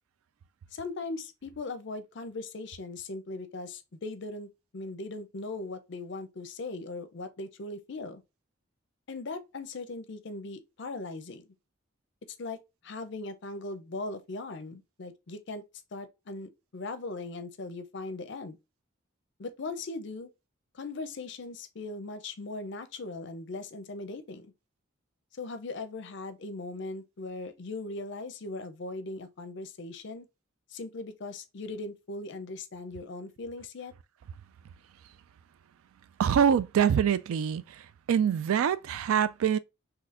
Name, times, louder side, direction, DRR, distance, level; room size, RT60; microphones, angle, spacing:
voice 1, 0.7-8.2 9.1-11.5 12.4-12.6 12.8-15.6 15.9-18.6 19.4-20.3 20.7-24.5 25.4-30.3 30.7-33.9, left 3 dB, 60° left, 0.5 m, -39 dB
voice 2, 36.2-37.8 38.1-39.6, right 8 dB, 90° right, 0.3 m, -25 dB
4.0 x 2.8 x 2.5 m
head